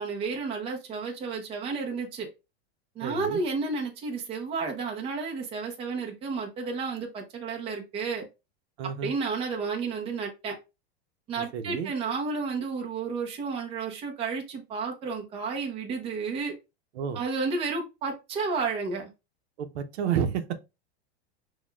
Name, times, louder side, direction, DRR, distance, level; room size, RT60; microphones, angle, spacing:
voice 1, 0.0-2.3 3.0-8.2 9.0-10.6 11.3-16.5 17.1-19.1, right 4 dB, 20° right, 0.6 m, -31 dB
voice 2, 3.0-3.4 8.8-9.1 11.4-11.9 17.0-17.2 19.6-20.6, right 8 dB, 80° right, 0.7 m, -30 dB
6.2 x 2.3 x 2.2 m
supercardioid pair, 160°, 32 cm